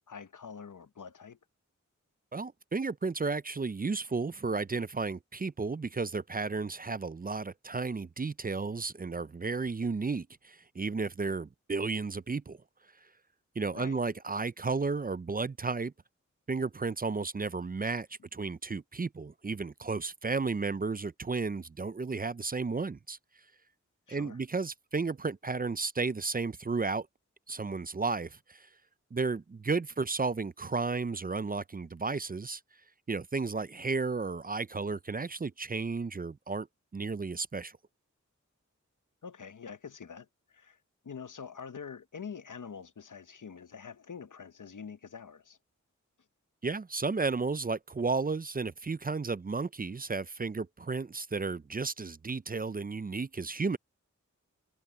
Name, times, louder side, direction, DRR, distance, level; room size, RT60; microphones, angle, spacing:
voice 1, 0.0-1.4 13.7-14.0 24.1-24.4 39.2-40.8 41.0-45.6, left 6 dB, 85° left, 0.9 m, -45 dB
voice 2, 2.3-12.6 13.6-15.9 16.5-23.2 24.1-27.1 27.5-28.7 29.1-32.6 33.1-36.7 36.9-37.7 46.6-53.8, right 4 dB, 30° right, 0.4 m, -33 dB
wide cardioid pair, 55°, 30 cm